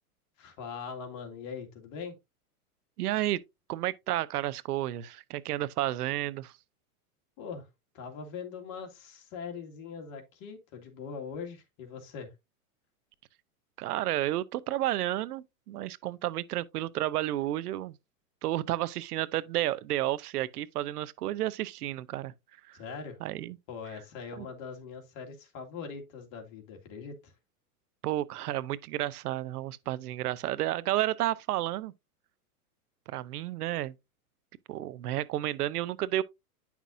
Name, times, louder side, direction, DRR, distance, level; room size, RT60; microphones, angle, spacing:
voice 1, 0.4-2.1 7.4-7.7 7.9-12.3 22.7-23.2 23.7-27.3, left 5 dB, 40° left, 2.1 m, -41 dB
voice 2, 3.0-3.4 3.7-6.5 13.8-17.9 18.4-22.3 22.7-22.8 23.2-23.6 24.4-24.5 28.0-31.9 33.1-33.9 34.7-36.2, right 14 dB, 75° right, 0.8 m, -31 dB
9.4 x 5.9 x 2.6 m
hypercardioid pair, 130°, 45 cm